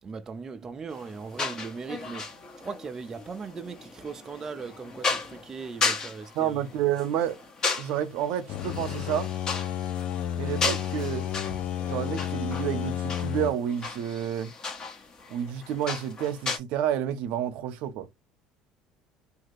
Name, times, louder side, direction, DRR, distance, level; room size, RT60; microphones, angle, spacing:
voice 1, 0.0-6.6, right 5 dB, 25° right, 0.3 m, -39 dB
Majiang Playing, 0.9-16.6, left 4 dB, 35° left, 1.0 m, -35 dB
voice 2, 6.4-7.4 7.8-9.3 10.4-11.3 11.8-14.5 15.3-18.1, right 10 dB, 70° right, 0.6 m, -30 dB
sound 1, 8.5-13.5, left 11 dB, 60° left, 0.4 m, -31 dB
2.7 x 2.4 x 3.1 m
cardioid pair, 120°, 2 cm